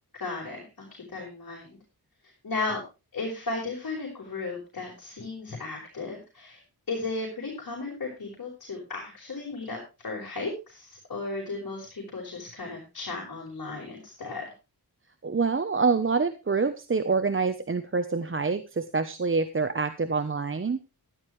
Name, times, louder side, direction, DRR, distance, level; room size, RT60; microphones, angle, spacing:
voice 1, 0.1-1.8 2.4-2.8 3.1-6.6 6.9-9.8 10.0-14.5, left 3 dB, 55° left, -2 dB, 5.3 m, -35 dB
voice 2, 15.2-20.8, right 4 dB, 30° right, 10 dB, 0.9 m, -26 dB
13.5 x 12.0 x 3.2 m, 0.29 s
wide cardioid pair, 95°, 39 cm